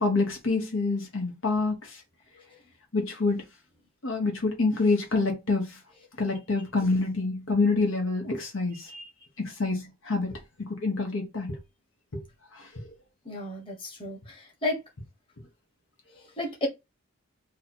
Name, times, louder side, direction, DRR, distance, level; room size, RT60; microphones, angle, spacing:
voice 1, 0.0-2.0 2.9-3.4 4.0-5.8 6.2-8.9 9.4-11.6 12.1-12.2 12.5-12.9, left 3 dB, 70° left, 1.2 m, -27 dB
voice 2, 13.2-14.8 16.2-16.7, left 1 dB, 25° left, 1.4 m, -33 dB
3.2 x 2.8 x 4.4 m
head